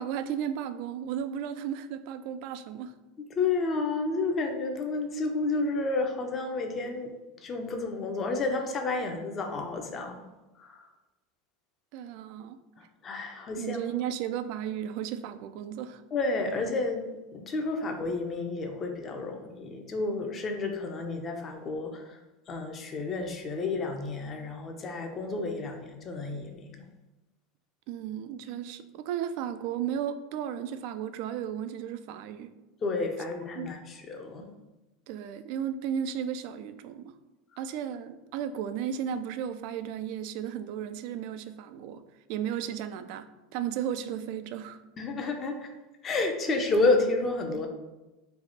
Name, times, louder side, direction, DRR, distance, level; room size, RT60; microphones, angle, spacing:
voice 1, 0.0-2.9 11.9-12.6 13.6-16.0 27.9-32.5 33.6-33.7 35.1-37.2 37.6-42.0 42.3-44.8, right 9 dB, 60° right, 10 dB, 0.3 m, -34 dB
voice 2, 3.2-7.1 7.4-10.3 10.6-10.8 12.8-13.8 16.1-17.0 17.3-22.2 22.5-26.7 32.8-34.5 45.0-45.7 46.0-47.7, left 3 dB, 35° left, 4 dB, 0.6 m, -30 dB
3.4 x 2.4 x 4.0 m, 1.0 s
hypercardioid pair, 90°, 0 cm